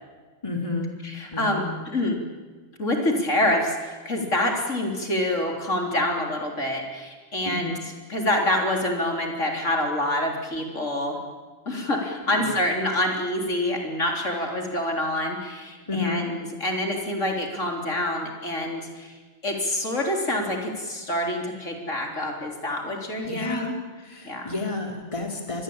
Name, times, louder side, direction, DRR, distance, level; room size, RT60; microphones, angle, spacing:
voice 1, 0.4-0.9 1.3-1.7 7.4-7.8 12.4-12.6 15.9-16.2 23.2-23.7 24.0-25.6, left 3 dB, 25° left, 2 dB, 3.1 m, -31 dB
voice 2, 1.0-1.6 1.9-2.2 2.8-7.7 8.1-11.2 11.7-19.2 19.4-23.7 24.2-24.5, left 1 dB, 65° left, 2 dB, 4.0 m, -26 dB
26.5 x 20.5 x 8.8 m, 1.4 s
omnidirectional pair, 1.4 m